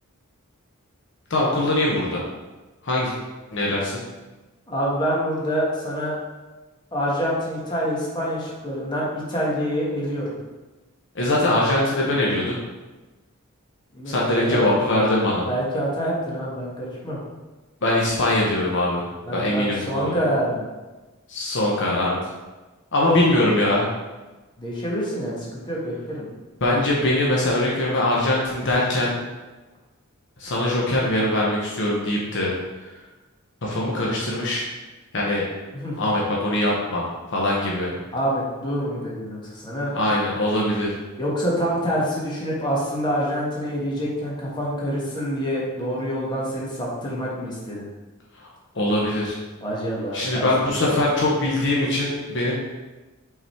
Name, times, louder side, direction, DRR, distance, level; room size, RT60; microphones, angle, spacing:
voice 1, 1.3-2.2 2.8-3.1 3.5-4.0 11.1-12.6 14.1-15.5 17.8-20.2 21.3-22.2 22.9-23.9 26.6-29.2 30.4-32.5 33.6-34.7 35.1-35.4 36.0-37.9 39.9-41.0 48.3-48.5 48.7-49.4 50.1-52.5, left 1 dB, 55° left, -4 dB, 1.0 m, -22 dB
voice 2, 4.7-6.1 6.9-10.3 13.9-14.6 15.5-17.2 19.3-20.7 24.6-26.2 35.7-36.0 38.1-39.9 41.2-47.9 49.6-50.5, equal, 20° left, -6 dB, 1.5 m, -26 dB
5.7 x 4.0 x 4.4 m, 1.2 s
head